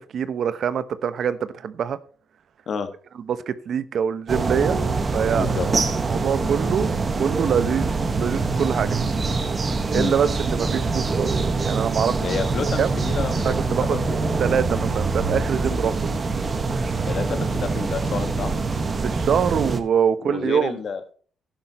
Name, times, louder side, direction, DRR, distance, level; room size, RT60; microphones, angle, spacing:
voice 1, 0.0-2.0 3.3-4.8 5.1-5.5 6.1-6.9 7.2-9.0 9.9-11.3 11.6-12.2 12.8-13.0 13.4-14.0 14.4-16.1 19.0-20.8, right 7 dB, 60° right, 0.9 m, -24 dB
sound 1, 4.3-19.8, right 3 dB, 35° right, 1.6 m, -24 dB
voice 2, 5.3-5.7 9.9-10.1 12.2-14.2 17.1-18.5 20.2-21.0, left 6 dB, 55° left, 1.8 m, -29 dB
12.0 x 10.5 x 3.1 m
cardioid pair, 90°, 0 cm